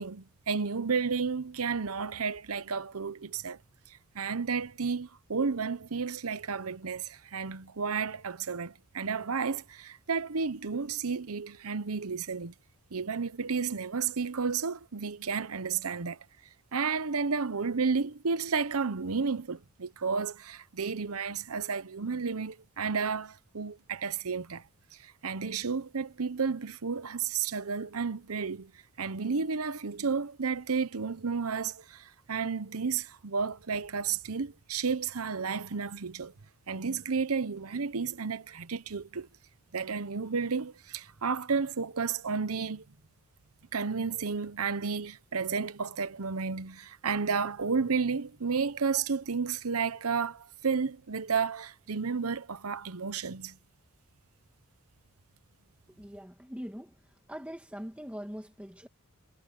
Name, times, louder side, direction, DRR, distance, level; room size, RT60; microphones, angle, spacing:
voice 1, 0.0-3.6 4.1-12.5 12.9-16.2 16.7-24.6 25.0-28.7 29.0-36.3 36.7-39.3 39.7-42.8 43.7-53.6, right 5 dB, 80° right, 0.9 m, -32 dB
voice 2, 56.0-56.9 57.3-58.9, equal, 5° right, 2.0 m, -42 dB
head